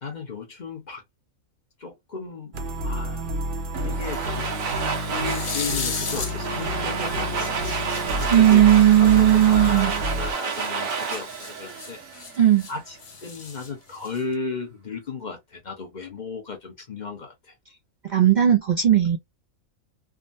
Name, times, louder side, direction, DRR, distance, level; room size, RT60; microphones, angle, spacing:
voice 1, 0.0-1.0 1.8-2.5 2.8-3.3 3.8-4.5 5.0-12.2 12.7-17.5, left 4 dB, 40° left, 0.8 m, -35 dB
sound 1, 2.5-10.3, equal, 45° right, 0.7 m, -30 dB
Domestic sounds home sounds, 3.7-12.7, right 5 dB, 75° right, 1.2 m, -30 dB
sound 2, 5.2-6.7 7.0-10.0 10.5-12.7 13.0-14.3, left 5 dB, 60° left, 0.3 m, -35 dB
voice 2, 8.3-9.9 12.4-12.7 18.0-19.2, right 11 dB, 90° right, 0.4 m, -16 dB
3.6 x 2.1 x 2.5 m
omnidirectional pair, 1.4 m